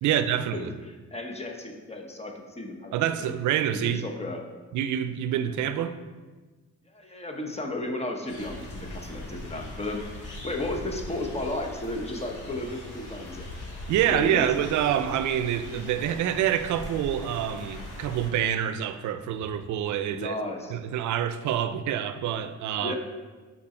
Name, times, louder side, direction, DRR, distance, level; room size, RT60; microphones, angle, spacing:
voice 1, 0.0-0.7 2.9-4.1 4.7-6.0 13.9-20.4 20.7-23.0, right 10 dB, 75° right, 0.5 m, -27 dB
voice 2, 0.5-3.3 3.8-4.4 6.9-13.5 14.1-14.5 20.1-20.8 22.8-23.0, left 1 dB, 20° left, 0.9 m, -34 dB
sound 1, 8.3-18.3, left 1 dB, 85° left, 1.6 m, -40 dB
5.9 x 4.0 x 4.4 m
cardioid pair, 90°, 30 cm